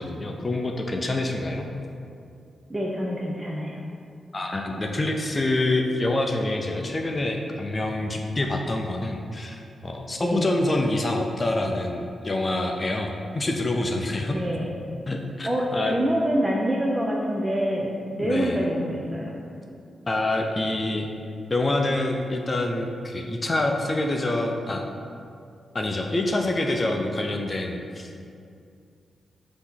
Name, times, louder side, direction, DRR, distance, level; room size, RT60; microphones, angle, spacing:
voice 1, 0.0-1.7 4.3-14.4 15.1-15.9 18.2-18.6 20.1-21.1 21.5-24.8 25.7-28.1, left 2 dB, 30° left, 2 dB, 0.5 m, -26 dB
voice 2, 2.7-3.8 10.2-10.6 14.3-14.8 15.4-19.4, equal, 15° right, -3 dB, 0.6 m, -26 dB
6.0 x 2.9 x 5.6 m, 2.5 s
cardioid pair, 80°, 0 cm